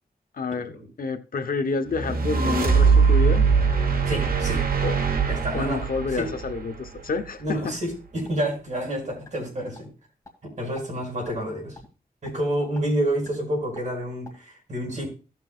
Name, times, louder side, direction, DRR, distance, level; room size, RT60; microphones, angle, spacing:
voice 1, 0.4-3.4 4.8-5.0 5.5-7.7, left 4 dB, 70° left, 0.9 m, -29 dB
sound 1, 1.9-7.3, right 5 dB, 70° right, 1.2 m, -22 dB
voice 2, 4.1-4.6 5.3-5.8 6.1-6.3 7.4-7.9 8.1-9.9 10.4-11.8 12.2-15.1, right 1 dB, 50° right, 5.2 m, -29 dB
sound 2, 7.6-8.4 8.7-8.8 9.2-9.3 9.7-9.8 10.2-10.3 10.7-10.8 11.2-11.4 11.7-11.9 12.2-12.3 12.7-12.8 13.2-13.3 13.7-13.8 14.2-14.3, left 2 dB, 20° left, 2.1 m, -46 dB
16.5 x 6.1 x 2.4 m
wide cardioid pair, 115°, 15 cm